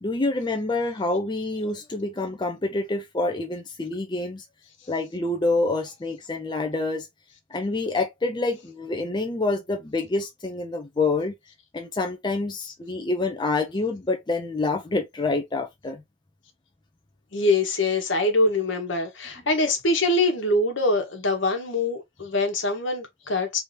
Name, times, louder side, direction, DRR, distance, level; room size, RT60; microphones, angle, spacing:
voice 1, 0.0-4.4 4.9-7.1 7.5-11.3 11.7-16.0, left 2 dB, 20° left, 0.5 m, -27 dB
voice 2, 17.3-23.6, left 2 dB, 65° left, 1.2 m, -24 dB
3.4 x 2.7 x 3.3 m
head